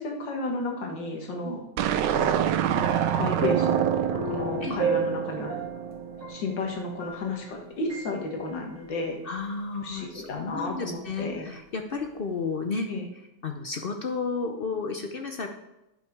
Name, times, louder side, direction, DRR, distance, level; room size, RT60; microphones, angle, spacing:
voice 1, 0.0-1.6 3.2-3.8 4.1-5.6 6.3-9.2 9.8-11.5 12.9-13.0, left 3 dB, 90° left, 1 dB, 2.2 m, -32 dB
sound 1, 1.8-6.2, right 9 dB, 80° right, 1.3 m, -27 dB
sound 2, 2.1-7.6 7.9-8.1, right 6 dB, 10° right, 1.8 m, -32 dB
voice 2, 9.2-12.9 13.4-15.5, left 4 dB, 65° left, 5 dB, 0.5 m, -32 dB
10.0 x 5.8 x 4.6 m, 0.91 s
omnidirectional pair, 1.9 m